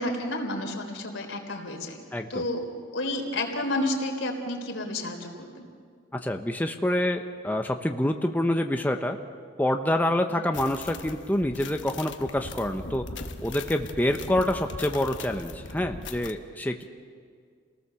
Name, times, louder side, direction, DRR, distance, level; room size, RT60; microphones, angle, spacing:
voice 1, 0.0-2.0 2.3-2.6 2.9-5.7 10.3-10.5, left 1 dB, 85° left, 2 dB, 3.6 m, -31 dB
voice 2, 2.1-2.4 6.1-9.2 9.6-13.1 13.4-16.8, left 1 dB, 10° left, 4 dB, 0.8 m, -27 dB
sound 1, 10.5-16.3, left 3 dB, 70° left, 1.3 m, -40 dB
28.5 x 18.5 x 6.9 m, 2.1 s
head